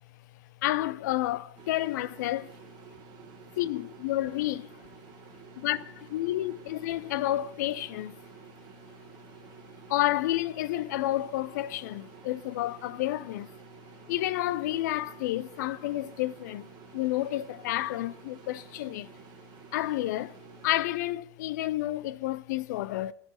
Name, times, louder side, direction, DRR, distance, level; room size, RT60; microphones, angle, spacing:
voice 1, 0.6-2.6 3.6-4.9 5.6-8.2 9.9-13.5 14.1-19.1 19.7-20.4 20.6-23.1, left 15 dB, 75° left, 0.4 m, -30 dB
sound 1, 1.6-20.9, right 9 dB, 45° right, 1.2 m, -51 dB
13.0 x 4.9 x 4.3 m
supercardioid pair, 115°, 10 cm